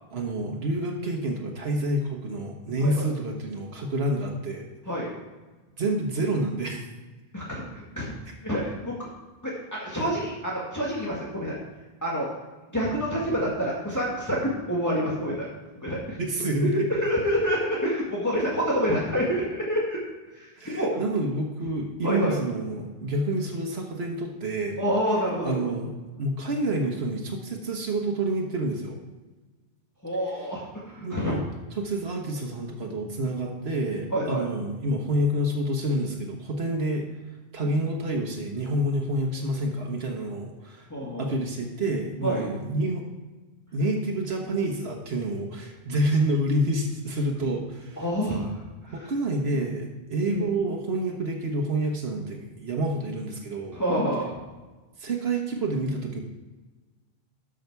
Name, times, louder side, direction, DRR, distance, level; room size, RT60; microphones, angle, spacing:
voice 1, 0.1-4.7 5.8-6.8 16.2-16.9 20.6-24.8 25.4-25.9 26.2-29.0 31.0-31.4 31.7-37.1 37.5-40.9 41.2-43.0 43.7-48.4 48.9-53.8 55.0-56.2, right 1 dB, 85° right, 1 dB, 1.5 m, -28 dB
voice 2, 7.3-8.1 8.4-9.1 9.4-11.6 12.0-12.3 12.7-15.5 15.8-16.2 16.7-20.0 20.3-20.9 22.0-22.3 24.8-25.7 30.0-31.3 34.1-34.4 40.9-41.3 42.2-42.5 48.0-48.5 48.9-49.0 50.3-50.4 53.7-54.3, equal, 15° left, -5 dB, 1.8 m, -27 dB
12.5 x 6.5 x 4.6 m, 1.2 s
omnidirectional pair, 1.0 m